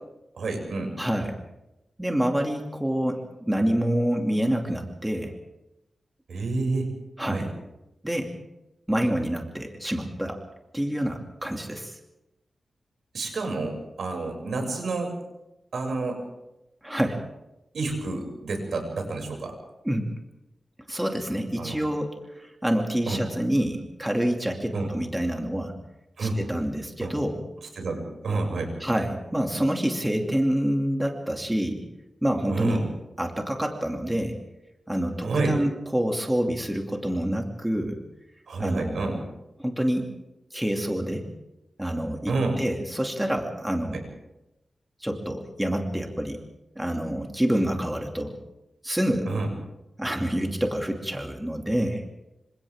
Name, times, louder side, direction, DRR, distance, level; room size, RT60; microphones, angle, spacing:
voice 1, 0.4-0.9 6.3-6.9 7.3-7.4 13.1-15.1 15.7-16.2 17.7-19.5 21.6-21.8 23.1-23.2 24.7-24.9 26.2-26.4 27.0-27.1 27.8-28.7 32.5-32.8 35.2-35.6 38.5-39.2 42.3-42.6 43.9-44.0 49.3-49.5, right 3 dB, 80° right, 2 dB, 6.6 m, -29 dB
voice 2, 1.0-1.4 2.0-5.3 7.2-7.5 8.0-8.3 8.9-10.4 10.7-12.0 16.8-17.2 19.8-20.1 20.9-25.7 26.2-27.4 28.8-31.8 32.2-32.9 33.2-34.4 34.9-38.0 38.6-39.2 39.6-40.1 40.5-41.3 41.8-44.0 45.0-46.4 46.8-48.3 48.8-49.3 50.0-52.0, equal, 10° right, 2 dB, 2.5 m, -27 dB
28.0 x 26.0 x 3.7 m, 0.91 s
wide cardioid pair, 120°, 0 cm